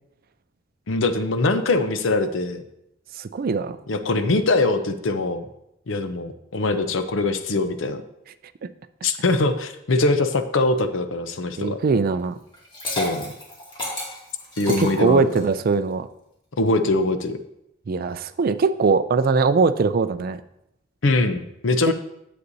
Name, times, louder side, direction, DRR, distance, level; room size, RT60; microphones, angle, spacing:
voice 1, 0.9-2.6 3.9-5.5 5.9-8.0 9.0-11.8 12.9-13.3 14.6-15.3 16.6-17.4 21.0-21.9, left 2 dB, 75° left, 9 dB, 0.6 m, -22 dB
voice 2, 3.2-3.8 11.6-12.4 14.8-16.1 17.9-20.4, right 4 dB, 50° right, 13 dB, 0.4 m, -21 dB
Liquid, 12.5-15.6, left 1 dB, 25° left, 2.2 m, -31 dB
9.7 x 7.9 x 2.7 m, 0.82 s
head